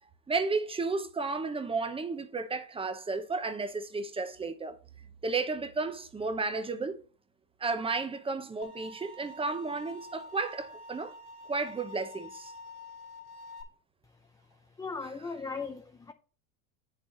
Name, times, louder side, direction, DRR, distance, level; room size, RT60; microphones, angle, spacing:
voice 1, 0.3-4.8 5.2-7.0 7.6-11.1 11.5-12.5 15.0-15.1, right 3 dB, 15° right, 0.9 m, -33 dB
sound 1, 8.6-13.6, left 2 dB, 70° left, 2.7 m, -47 dB
voice 2, 14.8-16.1, left 4 dB, 10° left, 0.5 m, -37 dB
8.5 x 6.6 x 3.9 m
supercardioid pair, 120°, 43 cm